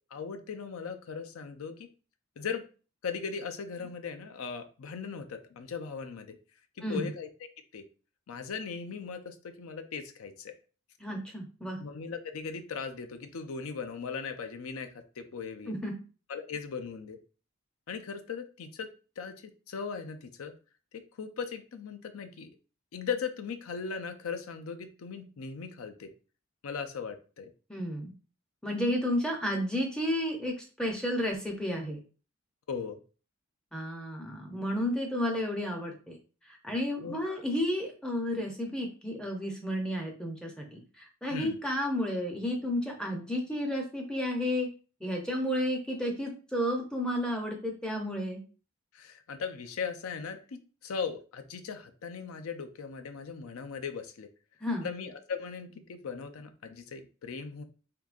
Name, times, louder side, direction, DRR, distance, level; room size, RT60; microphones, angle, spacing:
voice 1, 0.1-1.9 2.4-2.6 3.0-6.4 6.8-7.3 7.7-7.8 8.3-10.5 11.8-15.7 16.3-17.2 17.9-18.9 19.2-20.5 21.2-22.5 22.9-26.1 26.6-27.5 32.7-33.0 37.0-37.4 41.2-41.6 48.9-54.3 54.8-57.6, left 6 dB, 80° left, 8 dB, 0.5 m, -38 dB
voice 2, 6.8-7.1 11.0-11.8 15.7-15.9 27.7-28.1 28.6-32.0 33.7-36.2 36.5-44.7 45.0-48.4 54.6-54.9, equal, 5° left, 1 dB, 0.5 m, -32 dB
3.6 x 2.7 x 2.4 m, 0.36 s
head